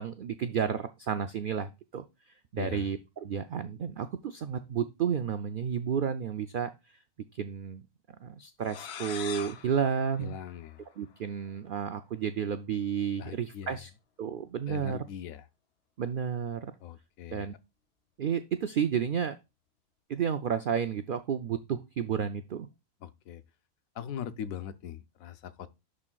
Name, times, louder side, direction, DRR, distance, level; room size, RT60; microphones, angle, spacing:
voice 1, 0.0-2.0 2.5-6.7 7.3-7.9 8.2-10.3 11.0-13.9 14.2-15.0 16.0-16.7 17.3-17.5 18.2-19.4 20.1-22.7, right 7 dB, 75° right, 0.4 m, -31 dB
voice 2, 2.5-2.9 10.2-10.8 13.2-13.8 14.7-15.5 16.8-17.5 23.0-23.4 23.9-25.7, left 9 dB, 75° left, 1.1 m, -41 dB
sound 1, 8.6-11.2, left 8 dB, 60° left, 0.8 m, -43 dB
11.0 x 4.3 x 2.3 m
omnidirectional pair, 1.5 m